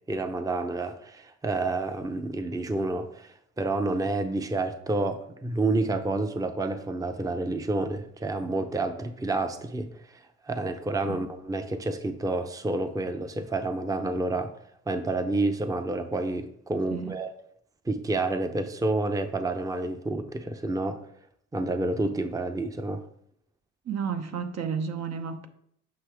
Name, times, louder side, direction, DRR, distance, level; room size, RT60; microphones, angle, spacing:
voice 1, 0.1-14.5 14.9-17.3 17.9-21.0 21.5-23.0, right 2 dB, 10° right, 0.6 m, -29 dB
voice 2, 23.8-25.5, right 6 dB, 60° right, 0.9 m, -32 dB
7.9 x 5.7 x 3.5 m
cardioid pair, 90°, 30 cm